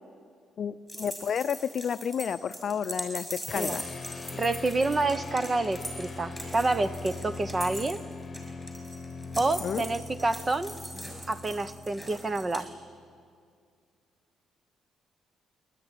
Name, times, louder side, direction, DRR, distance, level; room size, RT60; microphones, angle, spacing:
voice 1, 0.6-3.9 9.6-9.8, left 7 dB, 55° left, 13 dB, 0.6 m, -31 dB
sound 1, 0.9-12.6, equal, 5° right, 6.6 m, -41 dB
sound 2, 3.5-13.1, left 3 dB, 35° left, 1.1 m, -41 dB
voice 2, 4.3-8.0 9.4-10.7 11.3-12.7, right 2 dB, 30° right, 12 dB, 1.1 m, -28 dB
29.5 x 13.0 x 10.0 m, 2.2 s
cardioid pair, 90°, 0 cm